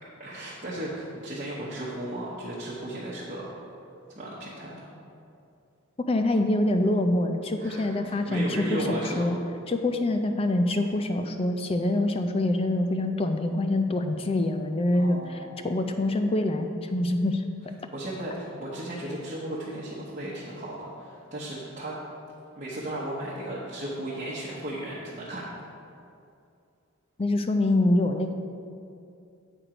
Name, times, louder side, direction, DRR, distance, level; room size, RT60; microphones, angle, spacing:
voice 1, 0.0-3.5 4.1-4.9 7.6-9.3 14.9-15.7 17.9-22.0 22.6-25.4, right 1 dB, 35° right, -8 dB, 0.9 m, -35 dB
voice 2, 6.0-9.4 9.7-17.4 27.2-28.3, left 1 dB, 25° left, 6 dB, 0.4 m, -25 dB
7.9 x 4.5 x 5.0 m, 2.5 s
head